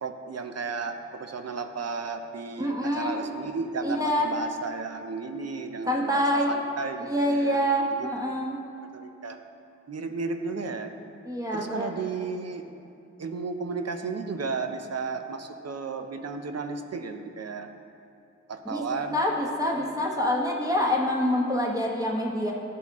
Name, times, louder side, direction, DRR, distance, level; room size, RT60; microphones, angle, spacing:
voice 1, 0.0-7.6 7.9-8.1 8.9-9.4 9.9-10.9 11.5-12.6 13.2-17.7 18.5-19.2 19.8-19.9, right 4 dB, 60° right, 7 dB, 0.6 m, -34 dB
voice 2, 2.6-3.2 3.8-4.3 5.9-6.5 7.0-8.6 11.3-11.9 18.7-18.8 19.1-22.5, equal, 10° right, -2 dB, 0.9 m, -26 dB
12.0 x 4.3 x 3.5 m, 2.7 s
wide cardioid pair, 95°, 29 cm